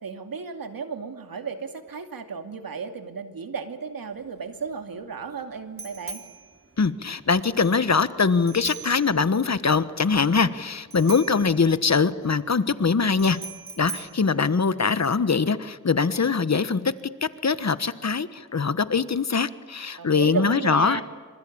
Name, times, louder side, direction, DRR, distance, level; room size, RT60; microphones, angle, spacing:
voice 1, 0.0-6.2 20.0-21.0, right 5 dB, 85° right, 6 dB, 2.5 m, -34 dB
Bicycle bell, 4.1-15.3, right 3 dB, 40° right, 4.1 m, -42 dB
voice 2, 6.8-13.4 13.8-16.9 17.4-21.0, left 5 dB, 50° left, 13 dB, 1.4 m, -22 dB
26.0 x 25.5 x 8.8 m, 1.5 s
cardioid pair, 55°, 34 cm